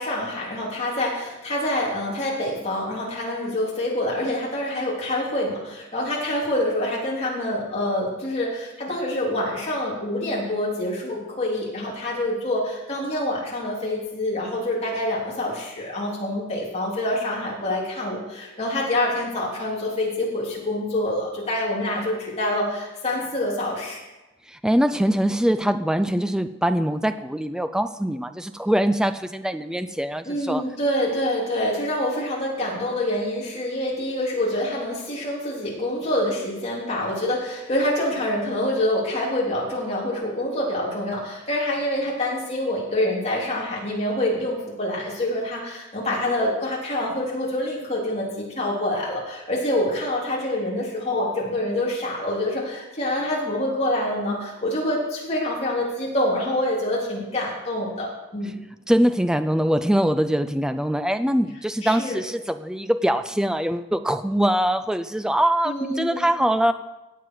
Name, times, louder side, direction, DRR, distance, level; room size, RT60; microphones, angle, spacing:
voice 1, 0.0-24.0 30.2-58.5 61.8-62.2 65.6-66.3, left 1 dB, 30° left, -4 dB, 3.5 m, -26 dB
voice 2, 24.5-30.6 58.9-66.7, equal, 5° right, 11 dB, 0.4 m, -23 dB
17.0 x 7.7 x 4.8 m, 1.0 s
head